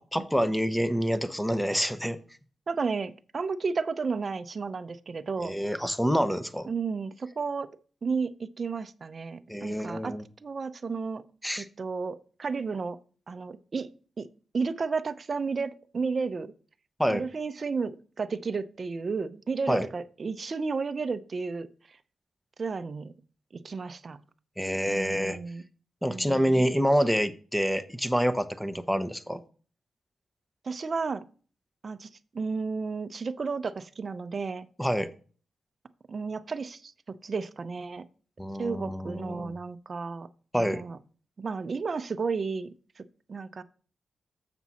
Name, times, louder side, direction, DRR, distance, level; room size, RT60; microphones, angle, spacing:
voice 1, 0.1-2.2 5.4-6.7 9.5-10.2 11.4-11.7 17.0-17.2 19.7-19.9 24.6-25.4 26.0-29.4 34.8-35.1 38.4-39.5 40.5-40.8, equal, 5° left, 11 dB, 0.8 m, -27 dB
voice 2, 2.7-5.6 6.7-7.7 8.0-11.2 11.6-13.0 13.3-13.9 14.2-14.3 14.5-16.5 17.1-22.0 22.6-23.1 23.5-24.2 24.9-25.6 26.1-26.6 30.6-31.2 31.8-32.1 32.3-34.7 36.1-36.9 37.2-38.0 38.6-40.3 40.6-41.0 41.4-43.0 43.3-43.6, right 4 dB, 50° right, 13 dB, 0.6 m, -32 dB
7.3 x 6.1 x 4.1 m, 0.39 s
cardioid pair, 65°, 0 cm